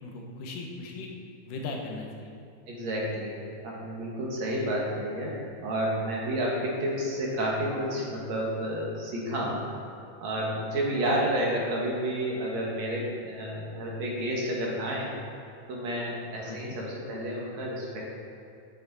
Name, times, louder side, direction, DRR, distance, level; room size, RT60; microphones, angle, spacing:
voice 1, 0.0-1.1 1.4-2.3 11.0-11.3 16.5-16.8, left 3 dB, 85° left, 0 dB, 2.8 m, -38 dB
voice 2, 2.7-9.7 10.2-15.1 15.7-18.0, right 1 dB, 60° right, -3 dB, 2.7 m, -30 dB
9.4 x 8.5 x 4.2 m, 2.6 s
omnidirectional pair, 3.7 m